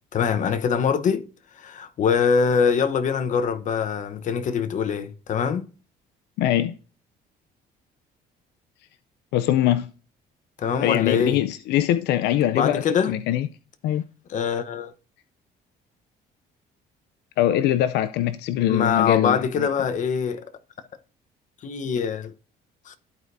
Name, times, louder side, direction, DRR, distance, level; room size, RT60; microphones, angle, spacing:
voice 1, 0.1-1.3 1.6-5.7 10.6-11.4 12.5-13.1 14.3-14.9 18.7-20.5 21.6-22.3 22.9-23.0, left 6 dB, 50° left, 0.9 m, -23 dB
voice 2, 6.4-6.7 9.3-9.9 10.8-13.5 13.8-14.0 17.4-19.7, left 12 dB, 80° left, 0.5 m, -22 dB
13.5 x 4.7 x 2.6 m
cardioid pair, 110°, 17 cm